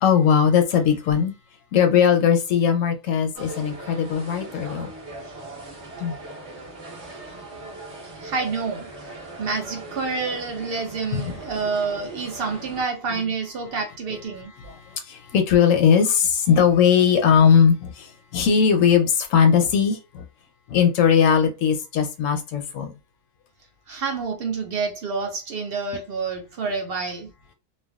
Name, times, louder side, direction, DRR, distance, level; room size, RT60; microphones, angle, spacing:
voice 1, 0.0-1.3 1.7-4.9 6.0-6.2 11.1-11.4 14.6-20.2 20.7-22.9, left 7 dB, 70° left, 0.9 m, -19 dB
sound 1, 3.3-12.8, right 2 dB, 50° right, 1.2 m, -40 dB
voice 2, 8.0-8.9 9.4-14.5 23.9-27.3, right 4 dB, 65° right, 0.5 m, -28 dB
3.3 x 2.2 x 2.3 m
omnidirectional pair, 1.6 m